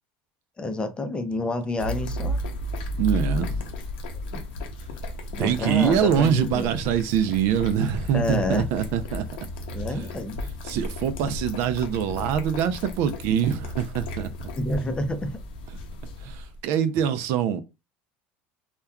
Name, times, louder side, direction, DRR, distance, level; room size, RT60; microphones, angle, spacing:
voice 1, 0.6-2.4 4.3-4.4 5.3-6.7 8.1-8.7 9.7-10.4 14.6-15.4, left 2 dB, 20° left, 0.5 m, -28 dB
sound 1, 1.8-16.6, left 1 dB, 85° left, 0.7 m, -34 dB
voice 2, 3.0-3.7 5.4-9.3 9.9-10.0 10.6-14.3 16.2-17.6, right 8 dB, 65° right, 0.4 m, -24 dB
3.4 x 2.2 x 2.2 m
supercardioid pair, 105°, 5 cm